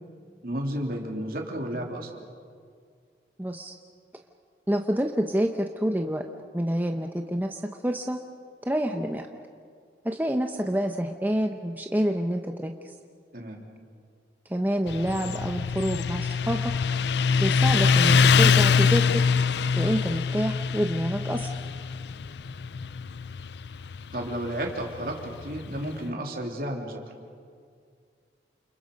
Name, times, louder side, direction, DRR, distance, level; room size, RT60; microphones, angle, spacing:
voice 1, 0.4-2.2 13.3-13.6 24.1-27.1, right 1 dB, 55° right, 1 dB, 3.1 m, -32 dB
voice 2, 3.4-3.7 4.7-6.2 6.5-8.2 8.7-9.3 10.0-12.7 14.5-16.6 17.4-19.2 19.8-21.5, equal, 10° right, 4 dB, 0.8 m, -27 dB
Motorcycle, 14.9-26.0, left 5 dB, 80° left, 0.5 m, -24 dB
29.5 x 28.0 x 5.3 m, 2.2 s
head